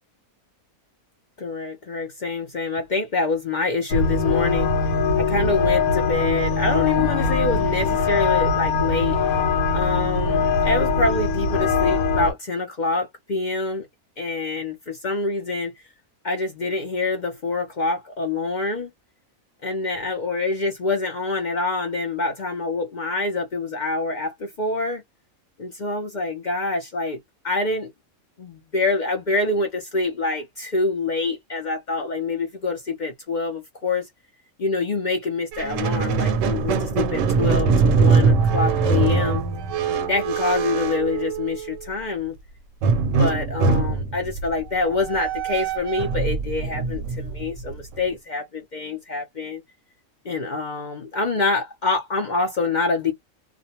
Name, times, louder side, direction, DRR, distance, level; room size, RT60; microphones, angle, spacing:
voice 1, 1.4-9.2 9.7-13.9 14.2-15.7 16.2-18.9 19.6-25.0 25.6-27.2 27.4-27.9 28.4-34.1 34.6-39.4 40.1-42.4 43.1-49.6 50.2-53.1, left 3 dB, 60° left, 0.5 m, -26 dB
sound 1, 3.9-12.3, left 4 dB, 85° left, 1.1 m, -22 dB
Squeak, 35.5-41.9 42.8-48.0, right 5 dB, 70° right, 0.9 m, -22 dB
2.4 x 2.1 x 2.7 m
omnidirectional pair, 1.5 m